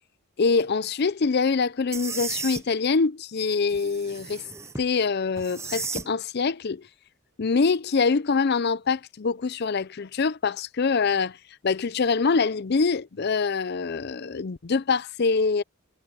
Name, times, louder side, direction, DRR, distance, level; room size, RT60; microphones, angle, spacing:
voice 1, 0.4-4.4 4.8-6.8 7.4-11.4 11.6-15.6, left 4 dB, 50° left, 0.5 m, -24 dB
sound 1, 1.9-2.6 3.7-4.9 5.4-6.1, right 4 dB, 15° right, 0.6 m, -34 dB
head